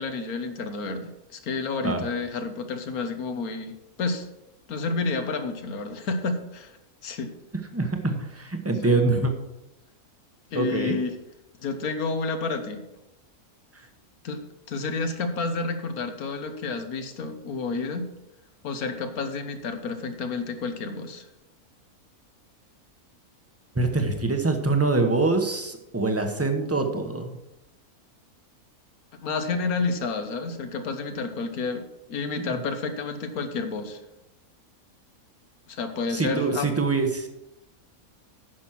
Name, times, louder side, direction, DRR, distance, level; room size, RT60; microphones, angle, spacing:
voice 1, 0.0-4.3 4.7-6.8 7.0-7.3 8.8-9.0 10.5-11.1 11.6-12.8 14.2-14.4 14.7-18.1 18.6-21.3 29.2-34.0 35.7-36.7, left 4 dB, 80° left, 7 dB, 1.5 m, -30 dB
voice 2, 7.7-9.3 10.5-10.9 23.7-27.4 32.4-32.6 36.1-37.3, right 3 dB, 10° right, 5 dB, 0.9 m, -24 dB
9.4 x 6.1 x 5.9 m, 0.92 s
omnidirectional pair, 1.5 m